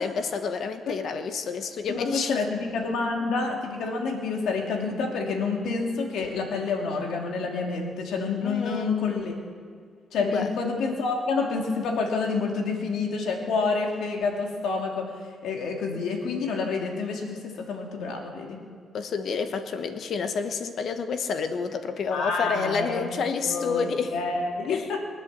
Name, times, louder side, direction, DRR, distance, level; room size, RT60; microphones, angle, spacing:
voice 1, 0.0-2.5 8.4-8.9 10.2-10.5 18.9-24.2 24.6-24.9, left 5 dB, 60° left, 8 dB, 1.2 m, -29 dB
voice 2, 1.9-9.3 10.1-15.1 15.4-18.6 22.1-23.1 23.4-25.0, left 4 dB, 80° left, 2 dB, 2.6 m, -28 dB
23.0 x 8.1 x 7.5 m, 2.1 s
cardioid pair, 90°, 0 cm